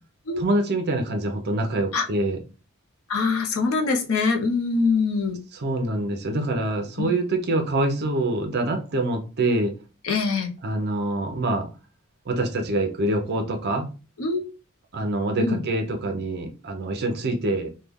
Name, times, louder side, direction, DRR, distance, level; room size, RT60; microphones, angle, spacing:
voice 1, 0.4-2.4 5.6-9.7 10.6-11.7 12.3-13.9 14.9-17.7, right 2 dB, 50° right, 0.6 m, -25 dB
voice 2, 3.1-5.4 7.0-7.1 10.0-10.5 14.2-14.4 15.4-15.6, left 4 dB, 75° left, 0.7 m, -23 dB
3.2 x 2.2 x 3.5 m
head